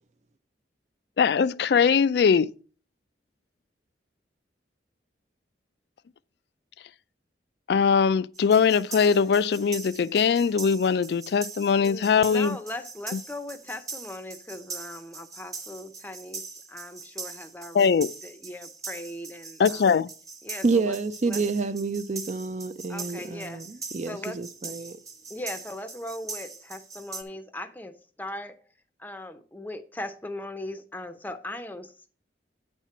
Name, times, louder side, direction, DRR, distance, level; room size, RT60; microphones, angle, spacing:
voice 1, 1.2-2.5 7.7-12.6 17.7-18.1 19.6-20.1, left 6 dB, 60° left, 0.3 m, -21 dB
sound 1, 8.3-27.2, right 4 dB, 20° right, 0.9 m, -41 dB
voice 2, 11.7-16.4 16.7-19.9 20.4-21.0 21.3-21.4 22.9-23.6 24.1-24.7 25.3-28.6 29.0-32.1, left 1 dB, 10° left, 0.6 m, -39 dB
voice 3, 20.6-25.0, right 4 dB, 40° right, 0.4 m, -28 dB
9.0 x 4.4 x 5.9 m
head